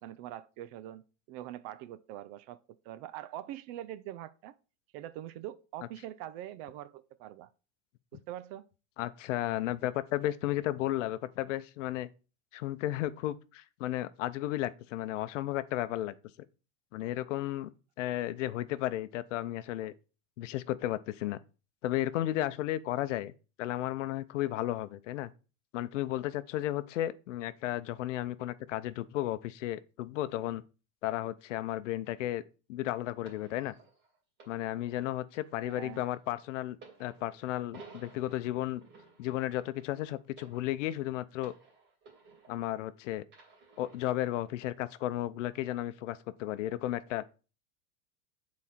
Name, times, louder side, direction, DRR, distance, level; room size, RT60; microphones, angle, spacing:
voice 1, 0.0-4.6 4.9-7.5 8.1-8.7 35.6-36.1, right 13 dB, 50° right, 0.6 m, -44 dB
voice 2, 9.0-12.1 12.5-16.2 16.9-17.7 18.0-19.9 20.4-21.4 21.8-23.3 23.6-25.3 25.7-30.6 31.0-32.4 32.7-33.7 34.5-38.8 39.2-41.5 42.5-43.2 43.8-47.2, left 14 dB, 80° left, 0.7 m, -34 dB
sound 1, 33.3-42.9 43.3-44.3 45.1-45.3, right 4 dB, 30° right, 2.6 m, -57 dB
7.2 x 4.2 x 4.2 m
supercardioid pair, 130°, 36 cm